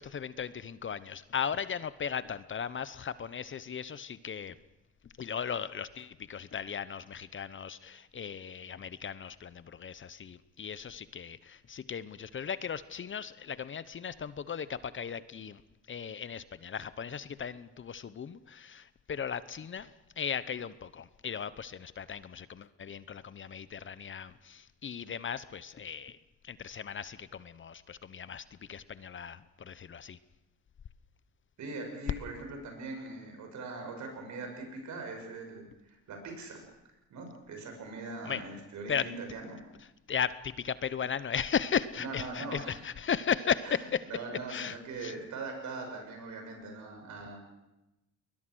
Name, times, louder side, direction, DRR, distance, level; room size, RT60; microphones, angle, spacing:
voice 1, 0.0-4.5 5.2-15.6 15.9-26.2 26.4-30.2 38.2-38.4 38.9-39.1 40.1-43.8 44.5-45.1, left 7 dB, 40° left, 16 dB, 0.9 m, -36 dB
voice 2, 31.6-36.6 37.1-39.6 42.0-42.8 43.6-43.8 44.0-47.4, right 3 dB, 70° right, 3 dB, 6.9 m, -41 dB
22.0 x 21.0 x 6.3 m, 0.94 s
cardioid pair, 90°, 30 cm